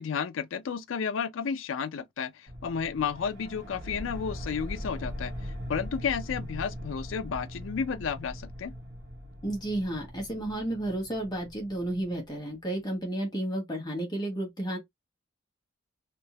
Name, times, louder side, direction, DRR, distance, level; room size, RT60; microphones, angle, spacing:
voice 1, 0.0-8.7, left 6 dB, 80° left, 0.4 m, -32 dB
sound 1, 2.5-12.7, equal, 65° right, 1.6 m, -41 dB
voice 2, 9.4-14.8, right 1 dB, 20° left, 1.2 m, -32 dB
3.4 x 2.7 x 2.8 m
head